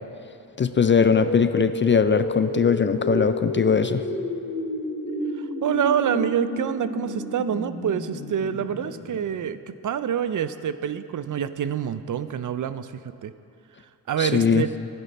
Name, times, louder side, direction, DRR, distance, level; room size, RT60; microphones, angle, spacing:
voice 1, 0.6-4.0 14.2-14.6, left 6 dB, 30° left, 11 dB, 0.4 m, -20 dB
sound 1, 0.7-9.6, left 1 dB, 90° left, 2.6 m, -31 dB
voice 2, 5.4-9.6 9.8-13.3 14.1-14.7, right 9 dB, 50° right, 13 dB, 0.5 m, -26 dB
11.5 x 9.8 x 4.1 m, 2.7 s
cardioid pair, 55°, 41 cm